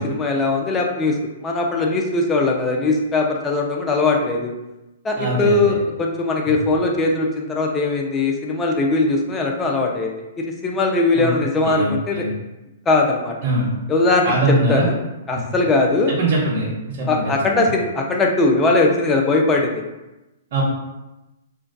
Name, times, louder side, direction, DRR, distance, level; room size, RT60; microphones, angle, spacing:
voice 1, 0.0-4.5 5.0-12.2 12.9-13.3 13.9-14.9 15.3-16.1 17.1-19.8, left 3 dB, 15° left, 0 dB, 0.3 m, -20 dB
voice 2, 5.2-5.7 11.1-11.3 11.6-12.3 13.4-13.7 14.2-14.9 15.3-15.4 16.2-17.7 20.5-20.6, right 2 dB, 50° right, -4 dB, 0.6 m, -22 dB
2.2 x 2.2 x 2.5 m, 1.0 s
hypercardioid pair, 150°, 0 cm